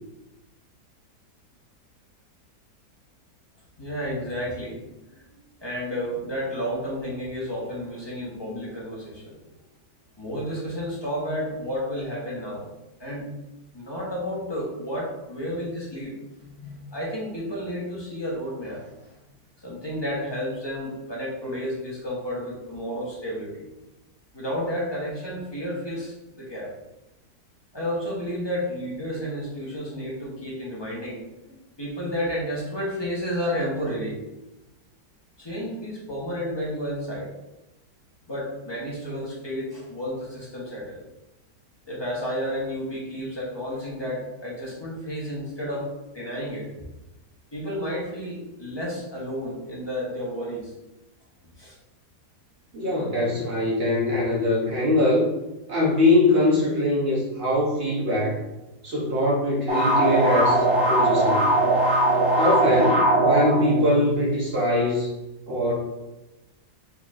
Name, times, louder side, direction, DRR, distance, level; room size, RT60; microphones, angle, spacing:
voice 1, 3.8-4.8 5.1-5.2 5.6-9.4 10.2-12.7 13.0-13.3 13.7-16.1 16.4-19.1 19.6-23.7 24.3-26.7 27.7-31.2 31.5-34.2 35.4-37.3 38.3-41.0 41.9-46.7 47.5-50.7 51.6-51.8, equal, 20° left, -5 dB, 0.9 m, -31 dB
voice 2, 52.7-55.3 55.7-58.4 58.8-61.4 62.3-65.1 65.5-65.7, left 1 dB, 40° right, -5 dB, 1.0 m, -22 dB
sound 1, 59.7-64.3, right 1 dB, 20° right, 0.6 m, -21 dB
4.4 x 4.1 x 2.5 m, 0.98 s
omnidirectional pair, 1.8 m